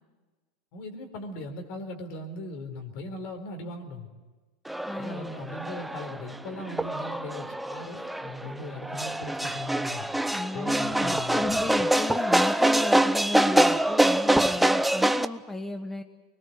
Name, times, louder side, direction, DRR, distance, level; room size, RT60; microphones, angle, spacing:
voice 1, 0.7-4.1 5.0-10.1 10.5-11.5, left 1 dB, 60° left, 6 dB, 4.2 m, -39 dB
sound 1, 4.7-15.3, right 1 dB, 5° right, 0.8 m, -25 dB
voice 2, 4.9-5.4 10.3-16.0, left 2 dB, 10° left, 8 dB, 1.2 m, -34 dB
24.5 x 21.0 x 8.0 m, 1.3 s
supercardioid pair, 110°, 2 cm